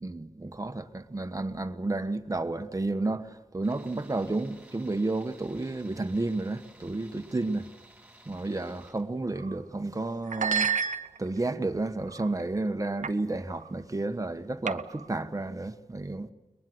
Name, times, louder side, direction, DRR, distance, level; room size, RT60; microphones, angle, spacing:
voice 1, 0.0-7.7 8.3-10.8 11.2-16.3, right 2 dB, 25° right, 1.2 m, -31 dB
Tools, 3.6-9.0, right 2 dB, 10° right, 4.0 m, -55 dB
sound 1, 9.3-9.6 10.3-11.5 12.1-12.4 13.0-13.2 13.5-13.7 14.7-15.1, right 6 dB, 75° right, 0.8 m, -31 dB
22.5 x 20.5 x 7.8 m
cardioid pair, 50°, 13 cm